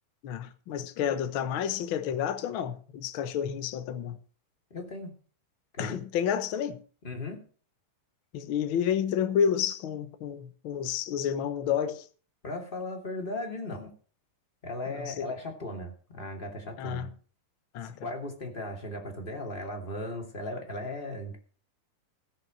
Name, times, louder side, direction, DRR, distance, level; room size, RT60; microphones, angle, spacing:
voice 1, 0.2-4.2 5.8-6.8 8.3-12.0 14.9-15.3 16.8-17.1 17.7-17.9, left 8 dB, 80° left, 1.1 m, -30 dB
voice 2, 4.7-5.1 5.7-6.0 7.0-7.5 12.4-13.9 14.6-17.1 17.8-21.4, left 1 dB, 15° left, 2.4 m, -37 dB
17.0 x 6.5 x 6.4 m
omnidirectional pair, 3.8 m